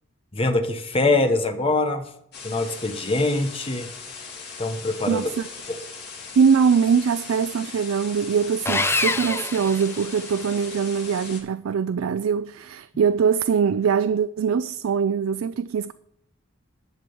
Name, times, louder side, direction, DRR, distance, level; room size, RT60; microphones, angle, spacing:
voice 1, 0.3-2.1 2.4-3.9 4.6-5.3, left 2 dB, 25° left, 1.1 m, -23 dB
sound 1, 2.3-11.4, left 5 dB, 55° left, 2.7 m, -39 dB
voice 2, 5.1-5.5 6.4-15.9, right 6 dB, 90° right, 0.4 m, -22 dB
Sawing, 8.6-10.5, left 3 dB, 10° left, 0.6 m, -26 dB
11.0 x 6.1 x 6.9 m
head